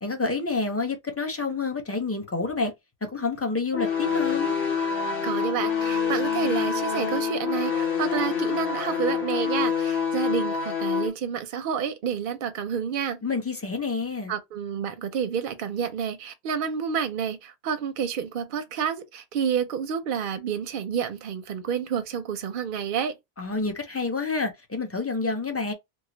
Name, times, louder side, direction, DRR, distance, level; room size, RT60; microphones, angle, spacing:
voice 1, 0.0-2.7 3.0-4.5 13.2-14.3 23.4-25.7, left 4 dB, 20° left, 0.5 m, -28 dB
sound 1, 3.7-11.1, left 6 dB, 65° left, 1.1 m, -26 dB
voice 2, 5.2-13.2 14.3-23.2, right 7 dB, 60° right, 0.6 m, -29 dB
3.1 x 2.0 x 3.7 m
omnidirectional pair, 1.1 m